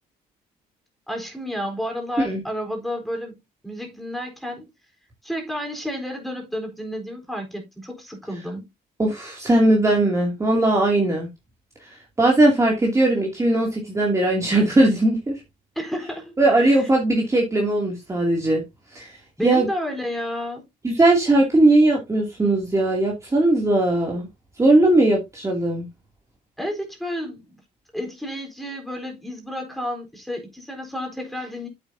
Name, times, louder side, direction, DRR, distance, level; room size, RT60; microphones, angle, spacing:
voice 1, 1.1-3.4 3.6-4.7 5.2-8.7 15.8-16.9 19.4-20.6 26.6-27.5 27.9-31.7, equal, ahead, 4.1 m, -31 dB
voice 2, 9.0-11.3 11.8-15.4 16.4-18.6 18.9-19.2 19.4-19.7 20.8-24.3 24.6-25.8, right 2 dB, 15° right, 2.7 m, -19 dB
8.7 x 8.3 x 2.8 m
cardioid pair, 110°, 17 cm